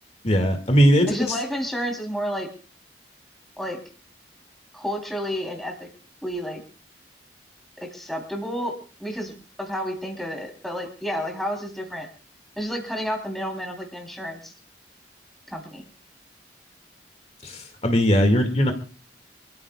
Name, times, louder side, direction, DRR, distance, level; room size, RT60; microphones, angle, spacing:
voice 1, 0.2-1.4 17.4-18.7, equal, 40° left, 5 dB, 2.1 m, -19 dB
voice 2, 1.1-2.5 3.6-3.8 4.7-5.9 6.2-6.6 7.8-9.3 9.6-12.1 12.6-14.5 15.5-15.8, equal, ahead, 0 dB, 3.5 m, -30 dB
27.0 x 14.0 x 2.4 m, 0.37 s
head